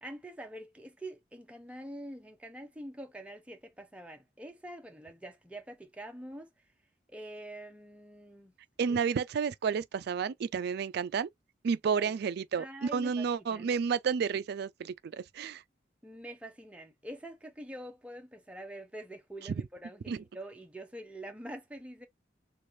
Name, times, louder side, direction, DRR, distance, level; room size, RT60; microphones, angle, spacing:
voice 1, 0.0-6.5 7.1-8.5 8.9-9.0 12.0-12.2 12.6-13.7 16.0-22.1, right 1 dB, 5° right, 0.7 m, -45 dB
voice 2, 8.8-11.3 11.6-15.6 20.1-20.2, right 6 dB, 60° right, 0.3 m, -31 dB
3.2 x 2.5 x 2.6 m
head